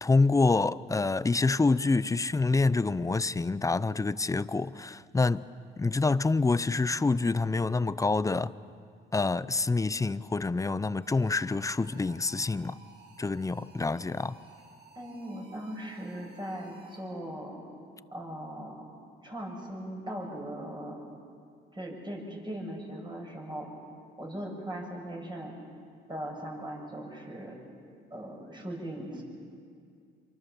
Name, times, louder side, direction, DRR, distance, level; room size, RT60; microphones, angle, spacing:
voice 1, 0.0-5.5 5.8-8.5 9.1-12.8 13.2-14.4, left 3 dB, 15° left, 0.6 m, -27 dB
sound 1, 11.0-17.3, right 3 dB, 55° right, 6.3 m, -55 dB
voice 2, 14.9-17.6 18.1-18.8 19.2-21.0 21.7-23.7 24.2-25.6 26.1-27.6 28.1-29.2, right 1 dB, 25° right, 6.9 m, -39 dB
26.5 x 24.0 x 7.1 m
cardioid pair, 90°, 20 cm